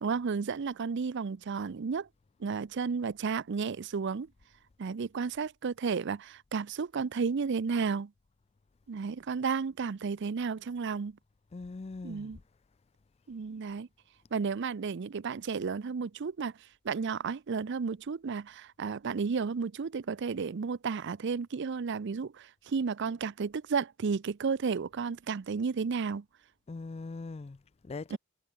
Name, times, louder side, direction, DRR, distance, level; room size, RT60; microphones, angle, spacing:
voice 1, 0.0-2.1 2.4-4.3 4.8-8.1 8.9-11.2 12.0-12.4 13.3-13.9 14.3-16.5 16.8-26.2 28.1-28.2, right 5 dB, 55° right, 0.5 m, -32 dB
voice 2, 11.5-12.4 26.7-28.2, left 3 dB, 30° left, 0.4 m, -41 dB
head